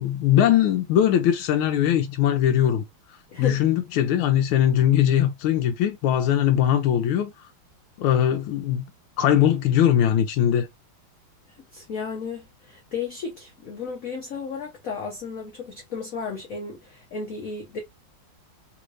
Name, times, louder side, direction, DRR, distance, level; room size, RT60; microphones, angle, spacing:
voice 1, 0.0-2.8 3.4-7.3 8.0-8.8 9.2-10.7, left 10 dB, 85° left, 1.4 m, -20 dB
voice 2, 3.3-3.6 11.7-17.8, left 5 dB, 55° left, 1.0 m, -33 dB
3.7 x 3.1 x 2.5 m
omnidirectional pair, 2.3 m